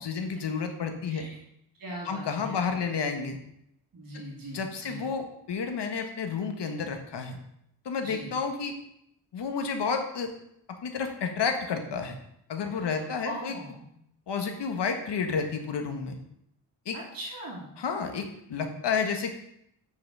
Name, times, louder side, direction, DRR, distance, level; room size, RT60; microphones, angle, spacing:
voice 1, 0.0-1.3 2.0-3.4 4.1-4.2 4.5-7.4 7.8-8.7 9.3-10.3 10.8-12.2 12.5-13.5 14.3-16.2 16.8-17.0 17.8-19.3, left 5 dB, 75° left, 5 dB, 1.6 m, -31 dB
voice 2, 1.8-2.9 3.9-5.1 8.0-8.3 12.7-13.9 16.9-17.7, right 1 dB, 55° right, -4 dB, 2.9 m, -41 dB
7.8 x 6.3 x 6.1 m, 0.76 s
wide cardioid pair, 125°, 42 cm